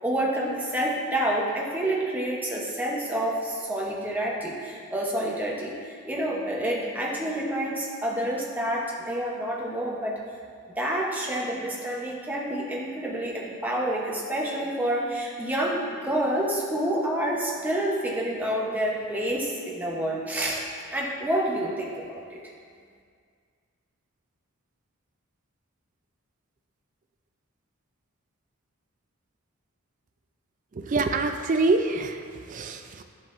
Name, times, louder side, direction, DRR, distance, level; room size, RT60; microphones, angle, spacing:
voice 1, 0.0-10.2 10.8-20.6 20.9-22.4, right 1 dB, 10° right, -3 dB, 0.8 m, -28 dB
voice 2, 30.7-33.0, right 3 dB, 35° right, 7 dB, 0.3 m, -26 dB
10.5 x 6.1 x 2.5 m, 2.1 s
head